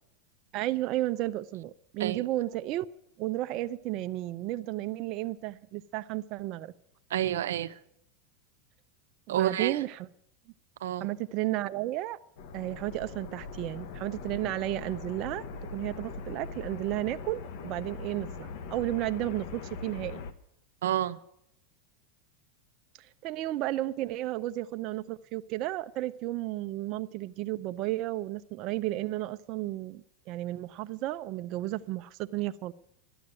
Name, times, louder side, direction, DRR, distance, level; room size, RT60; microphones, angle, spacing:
voice 1, 0.5-2.9 3.2-6.7 9.3-10.1 11.0-12.2 12.5-20.2 23.0-32.7, right 16 dB, 50° right, 10 dB, 0.4 m, -33 dB
voice 2, 7.1-7.7 9.3-9.8 10.8-11.1 20.8-21.2, right 11 dB, 90° right, 11 dB, 0.6 m, -29 dB
sound 1, 12.4-20.3, left 4 dB, 65° left, 1.1 m, -41 dB
12.0 x 9.3 x 8.8 m, 0.75 s
supercardioid pair, 130°, 0 cm